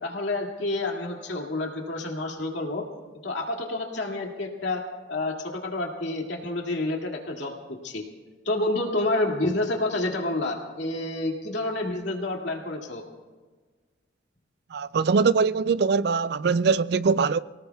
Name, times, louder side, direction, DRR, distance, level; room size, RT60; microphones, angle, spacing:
voice 1, 0.0-2.8 3.2-4.8 5.1-7.5 7.8-8.0 8.5-13.0, left 2 dB, 75° left, 2.2 m, -29 dB
voice 2, 14.7-17.4, right 5 dB, 60° right, 0.4 m, -22 dB
27.5 x 18.0 x 2.3 m
head